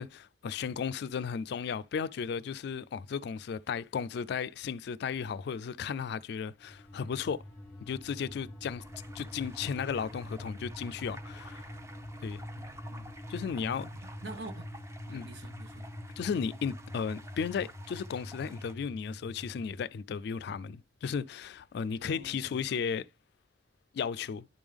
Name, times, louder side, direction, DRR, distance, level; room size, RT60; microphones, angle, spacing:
voice 1, 0.0-7.4 7.8-8.8 9.1-11.7 12.2-12.4 13.3-13.9 15.1-15.3 16.2-23.1 23.9-24.5, left 6 dB, 60° left, 0.3 m, -35 dB
sound 1, 6.6-19.9, left 1 dB, 10° left, 1.0 m, -45 dB
sound 2, 8.8-18.7, right 1 dB, 15° right, 0.6 m, -52 dB
voice 2, 12.5-13.1 13.4-14.7 15.1-15.8 22.0-22.8, right 2 dB, 65° right, 1.1 m, -47 dB
10.5 x 3.6 x 3.4 m
head